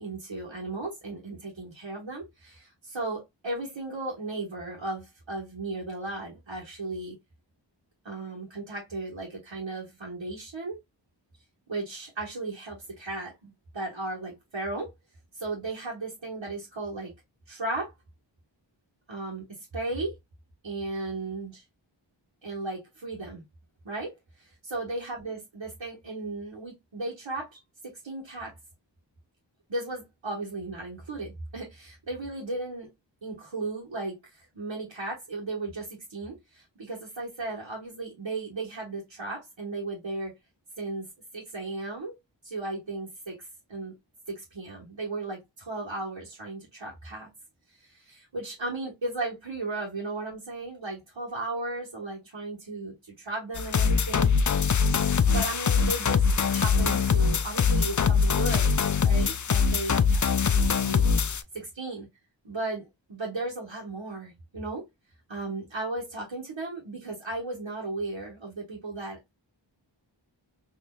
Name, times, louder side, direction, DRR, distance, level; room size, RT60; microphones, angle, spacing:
voice 1, 0.0-7.1 8.0-10.8 11.7-14.9 15.3-17.1 17.5-17.9 19.1-20.1 20.6-21.6 22.4-23.4 23.8-24.1 24.4-28.5 29.7-32.9 33.2-40.3 40.8-41.1 41.3-42.2 42.4-43.9 44.3-47.3 47.8-54.3 55.3-58.7 59.0-62.1 62.4-64.8 65.3-69.2, right 2 dB, 85° right, 1.7 m, -35 dB
sound 1, 53.5-61.4, left 5 dB, 45° left, 0.5 m, -23 dB
4.3 x 3.1 x 2.4 m
wide cardioid pair, 45°, 45 cm